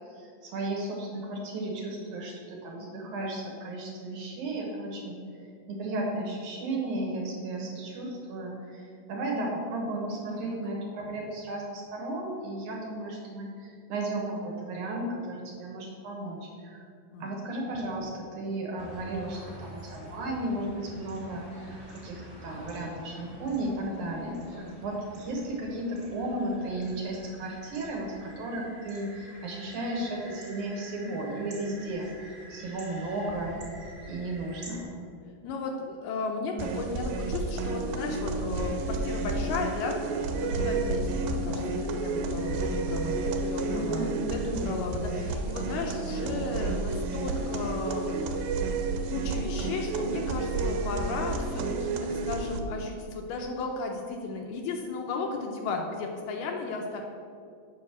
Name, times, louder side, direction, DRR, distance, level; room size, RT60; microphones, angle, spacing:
voice 1, 0.0-5.2 5.7-16.9 17.2-33.6 34.1-34.9 43.7-44.6, right 1 dB, 65° right, -1 dB, 2.2 m, -34 dB
voice 2, 17.1-17.5 24.5-24.7 35.4-48.4 49.1-57.0, left 3 dB, 75° left, 2 dB, 2.1 m, -35 dB
sound 1, 18.8-34.8, right 1 dB, 40° right, 1.0 m, -48 dB
sound 2, 36.6-52.6, right 3 dB, 80° right, 2.4 m, -31 dB
7.2 x 5.0 x 7.2 m, 2.4 s
omnidirectional pair, 4.3 m